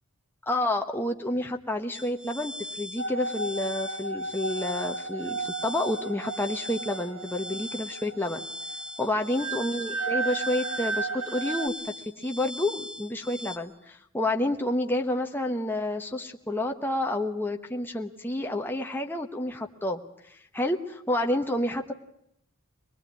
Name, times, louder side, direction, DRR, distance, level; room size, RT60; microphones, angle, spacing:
voice 1, 0.5-8.4 9.0-20.0 20.5-21.9, left 1 dB, 10° left, 3 dB, 1.1 m, -29 dB
sound 1, 1.9-13.6, left 1 dB, 65° right, 3.8 m, -40 dB
sound 2, 3.0-11.7, right 3 dB, 85° right, 1.2 m, -34 dB
24.5 x 20.0 x 9.5 m, 0.76 s
head